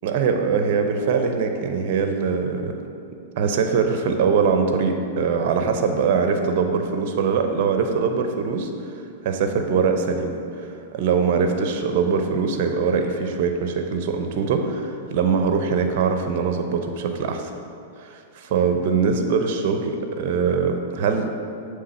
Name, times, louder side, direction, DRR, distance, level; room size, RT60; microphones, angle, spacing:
voice 1, 0.0-2.8 3.4-8.7 9.2-10.4 10.9-17.5 18.0-21.3, right 5 dB, 55° right, 5 dB, 0.7 m, -22 dB
7.5 x 3.3 x 5.7 m, 2.5 s
hypercardioid pair, 110°, 0 cm